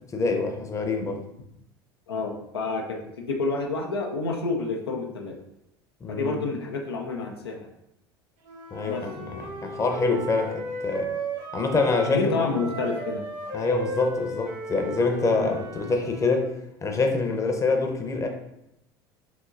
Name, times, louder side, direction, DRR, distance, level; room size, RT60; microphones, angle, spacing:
voice 1, 0.1-1.2 6.0-6.5 8.7-11.1 11.5-12.5 13.5-16.5 16.8-18.3, left 3 dB, 25° left, 3 dB, 0.7 m, -25 dB
voice 2, 2.1-5.4 6.1-7.7 8.8-9.1 12.1-13.3 15.4-15.5, left 3 dB, 90° left, 2 dB, 0.5 m, -29 dB
Wind instrument woodwind instrument, 8.4-12.2 12.5-16.5, right 2 dB, 60° right, 1.1 m, -36 dB
4.8 x 2.9 x 2.5 m, 0.81 s
hypercardioid pair, 75°, 13 cm